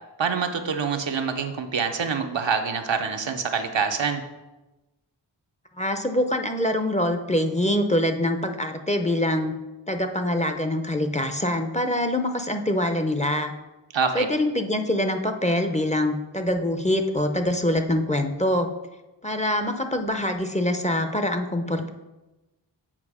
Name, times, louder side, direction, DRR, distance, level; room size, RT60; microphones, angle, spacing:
voice 1, 0.2-4.2 13.9-14.3, right 6 dB, 80° right, 5 dB, 0.8 m, -26 dB
voice 2, 5.8-9.5 9.9-13.5 14.1-18.7 19.2-21.9, left 1 dB, 15° left, 6 dB, 0.6 m, -24 dB
7.5 x 4.6 x 4.9 m, 1.1 s
wide cardioid pair, 45°, 44 cm